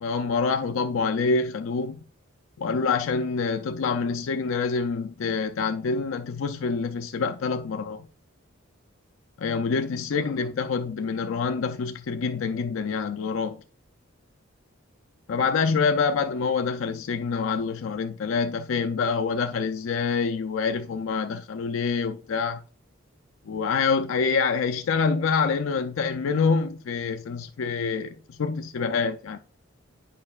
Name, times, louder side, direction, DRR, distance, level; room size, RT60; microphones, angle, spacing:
voice 1, 0.0-2.0 2.6-8.1 9.4-13.6 15.3-22.6 23.5-29.4, left 5 dB, 75° left, 0.4 m, -26 dB
8.7 x 5.2 x 2.4 m
head